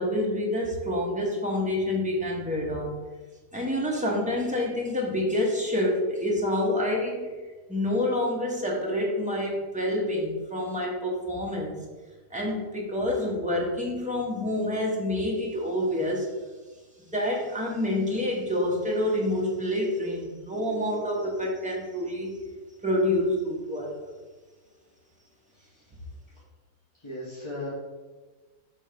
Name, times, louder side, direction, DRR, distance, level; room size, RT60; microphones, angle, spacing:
voice 1, 0.0-2.9 3.5-7.3 7.7-11.8 12.3-16.3 17.1-22.4 22.8-24.0, left 1 dB, 5° right, -2 dB, 0.7 m, -27 dB
voice 2, 25.5-25.9 27.0-27.7, left 1 dB, 25° left, -7 dB, 0.8 m, -38 dB
5.4 x 3.4 x 5.1 m, 1.3 s
omnidirectional pair, 1.7 m